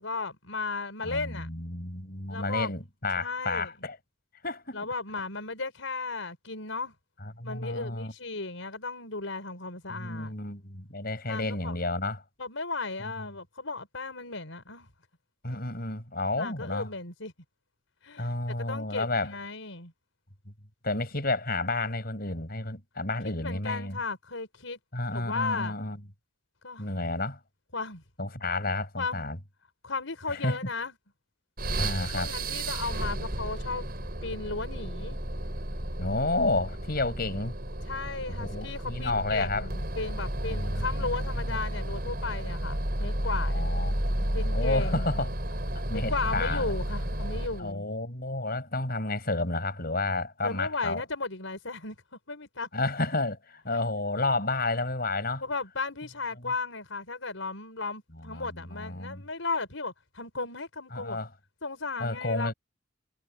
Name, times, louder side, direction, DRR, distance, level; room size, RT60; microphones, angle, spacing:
voice 1, 0.0-1.5 2.3-2.7 3.2-3.7 4.7-6.9 7.4-10.3 11.3-11.7 12.4-14.9 15.5-15.6 16.3-17.3 18.0-18.3 18.6-19.9 23.4-24.8 25.1-25.7 26.6-26.9 27.7-28.0 29.0-29.2 29.8-30.9 32.0-33.9 34.2-35.2 37.9-43.7 44.3-45.1 45.9-47.9 50.4-51.9 52.3-52.8 53.7-53.8 55.4-61.2 61.6-62.5, left 3 dB, 90° left, 5.2 m, -35 dB
voice 2, 1.0-4.0 4.4-4.8 7.2-8.1 9.9-12.2 13.2-13.3 15.4-16.9 18.2-19.3 20.8-24.0 24.9-26.0 26.8-27.4 28.2-29.4 30.3-30.6 31.8-32.3 36.0-37.6 38.3-39.7 40.5-41.6 43.3-45.3 45.9-46.7 47.6-51.0 52.7-55.4 58.3-59.2 60.9-61.3 62.0-62.5, left 2 dB, 50° left, 6.7 m, -31 dB
sound 1, 31.6-47.7, right 1 dB, 50° right, 5.6 m, -32 dB
head